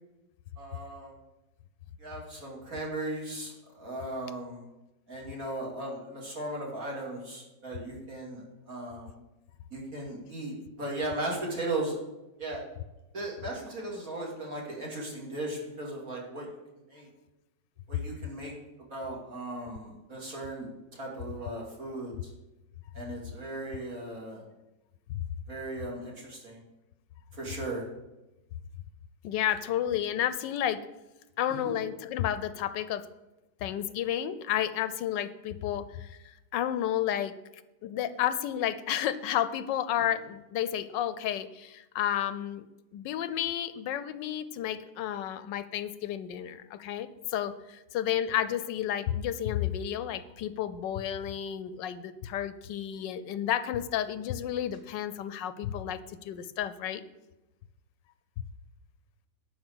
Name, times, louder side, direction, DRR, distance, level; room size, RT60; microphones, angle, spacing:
voice 1, 0.6-1.1 2.0-4.6 5.1-9.2 9.7-12.0 12.4-12.6 13.1-16.5 16.9-17.1 17.9-18.5 18.9-22.3 22.9-24.4 25.5-26.6 27.3-27.8, right 2 dB, 50° right, -3 dB, 2.9 m, -37 dB
voice 2, 29.2-30.8 31.4-33.0 33.6-36.2 36.5-37.4 37.8-42.7 42.9-57.0, left 11 dB, 80° left, 13 dB, 1.3 m, -31 dB
11.5 x 5.0 x 8.0 m, 1.0 s
omnidirectional pair, 1.9 m